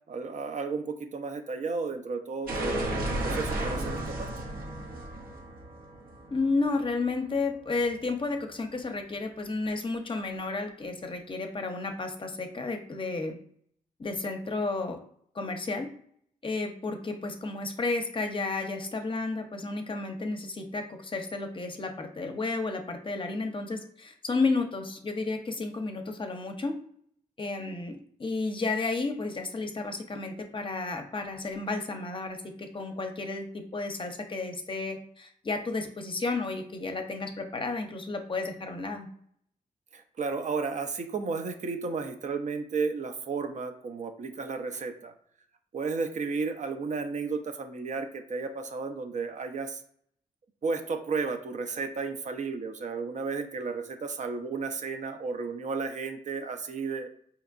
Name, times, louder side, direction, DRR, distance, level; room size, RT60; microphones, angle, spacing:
voice 1, 0.1-2.9 3.2-4.3 39.9-45.1 45.7-49.8 50.6-57.1, right 4 dB, 55° right, 7 dB, 0.5 m, -33 dB
sound 1, 2.5-7.2, right 1 dB, 90° right, 0.8 m, -33 dB
voice 2, 6.3-13.4 14.0-15.0 15.3-15.9 16.4-26.8 27.4-39.1, left 3 dB, 35° left, 5 dB, 0.6 m, -32 dB
4.3 x 2.8 x 2.5 m, 0.63 s
cardioid pair, 75°, 15 cm